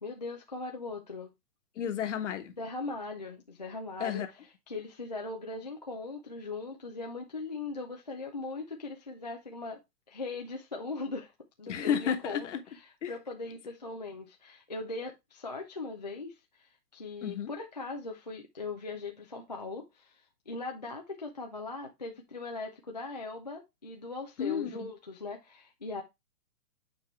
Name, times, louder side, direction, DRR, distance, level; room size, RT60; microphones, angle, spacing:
voice 1, 0.0-1.3 2.6-9.8 10.1-11.3 11.6-20.2 20.5-26.0, left 3 dB, 30° left, 0.4 m, -40 dB
voice 2, 1.8-2.5 4.0-4.3 11.7-12.6 13.0-13.1 17.2-17.5 24.4-24.7, left 8 dB, 45° left, 1.3 m, -31 dB
8.4 x 4.7 x 3.1 m
hypercardioid pair, 170°, 48 cm